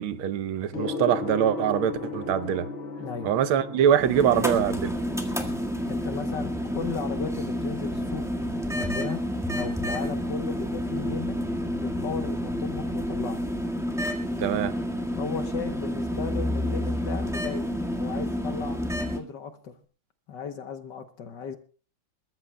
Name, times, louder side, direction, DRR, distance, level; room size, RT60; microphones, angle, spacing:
voice 1, 0.0-2.7 3.2-4.9 14.4-14.7, right 9 dB, 85° right, 1.6 m, -24 dB
Gong, 0.7-19.7, left 3 dB, 40° left, 1.5 m, -41 dB
voice 2, 3.0-3.3 5.9-8.2 8.7-9.2 9.5-11.4 11.8-13.4 15.2-18.8 19.1-19.7 20.3-21.6, left 6 dB, 65° left, 1.6 m, -35 dB
sound 1, 4.0-19.2, equal, ahead, 1.4 m, -29 dB
28.0 x 14.0 x 2.2 m
omnidirectional pair, 2.2 m